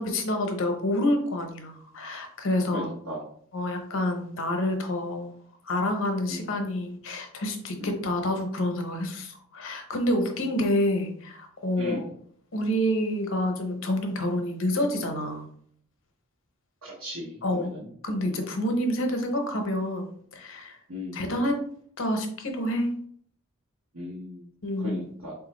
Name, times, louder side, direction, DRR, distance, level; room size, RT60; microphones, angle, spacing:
voice 1, 0.0-2.9 3.5-5.3 5.6-12.0 12.5-15.5 17.4-17.7 18.0-20.8 21.1-21.6 22.0-22.9 24.6-25.1, left 1 dB, 65° left, 4 dB, 0.7 m, -28 dB
voice 2, 2.7-3.2 6.3-6.5 7.8-7.9 11.8-12.0 16.8-17.9 18.2-18.4 20.9-21.2 23.9-24.5 24.8-25.3, left 1 dB, 65° right, -6 dB, 1.0 m, -36 dB
3.4 x 2.4 x 4.2 m, 0.62 s
head